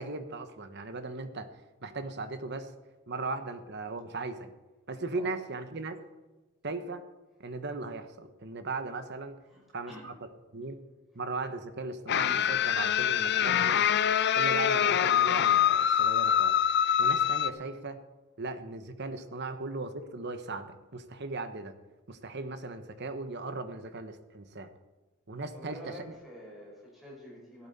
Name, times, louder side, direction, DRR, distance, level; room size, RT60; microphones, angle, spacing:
voice 1, 0.0-1.5 1.8-2.7 3.1-4.5 4.9-6.0 6.6-7.0 7.4-9.4 9.7-10.1 10.5-10.8 11.1-14.0 14.3-16.7 17.0-18.0 18.4-21.8 22.1-24.7 25.3-26.2, right 3 dB, 55° right, 9 dB, 1.2 m, -38 dB
voice 2, 9.5-10.1 25.5-27.7, equal, ahead, -5 dB, 5.5 m, -48 dB
sound 1, 12.1-17.5, left 9 dB, 55° left, 0.5 m, -25 dB
15.0 x 12.5 x 4.3 m, 1.2 s
head